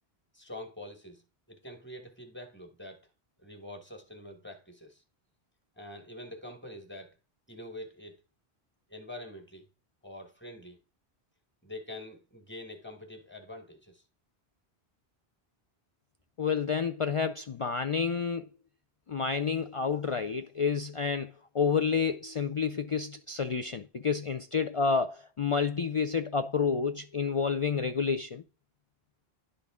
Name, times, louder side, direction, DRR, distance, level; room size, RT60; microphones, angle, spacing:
voice 1, 0.3-1.2 1.5-3.1 3.4-5.0 5.8-7.1 7.5-8.2 8.9-9.7 10.0-10.8 11.6-14.0, left 1 dB, 10° left, 1.5 m, -45 dB
voice 2, 16.4-18.5 19.1-28.4, left 5 dB, 60° left, 0.3 m, -29 dB
11.0 x 3.8 x 3.6 m
omnidirectional pair, 1.1 m